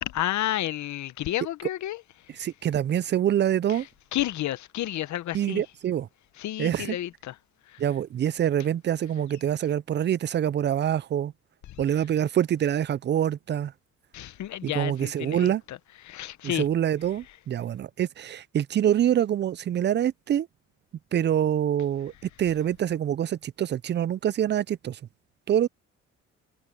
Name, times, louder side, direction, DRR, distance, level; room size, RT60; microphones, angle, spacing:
voice 1, 0.0-2.0 2.4-2.5 3.7-3.8 4.1-5.6 6.4-7.4 7.7-7.8 11.7-11.8 14.1-15.8 16.0-16.7, left 13 dB, 70° left, 0.9 m, -31 dB
voice 2, 2.4-3.9 5.3-6.1 6.6-7.0 7.8-11.3 11.8-13.7 14.6-15.6 16.4-20.5 21.1-22.1 22.4-25.0 25.5-25.7, right 10 dB, 40° right, 0.4 m, -25 dB
cardioid pair, 90°, 30 cm